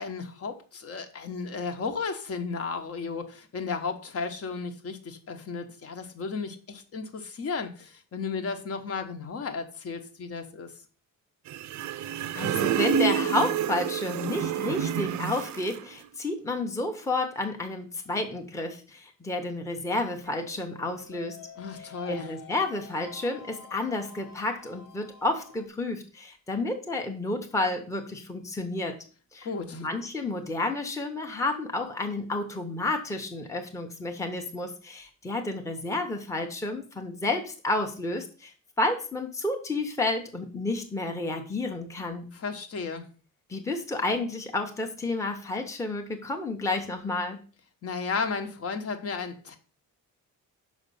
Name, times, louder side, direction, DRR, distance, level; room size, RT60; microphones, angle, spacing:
voice 1, 0.0-10.7 21.6-22.3 29.4-29.9 42.3-43.1 47.8-49.6, left 4 dB, 45° left, 6 dB, 1.1 m, -34 dB
sound 1, 11.5-15.8, right 9 dB, 60° right, 0.5 m, -28 dB
voice 2, 12.3-21.5 21.8-29.0 29.3-29.5 29.7-42.3 43.5-47.4, left 2 dB, 10° left, 3 dB, 0.9 m, -31 dB
sound 2, 20.2-25.7, left 5 dB, 70° left, 1.3 m, -48 dB
6.2 x 5.2 x 6.8 m, 0.39 s
cardioid pair, 175°, 32 cm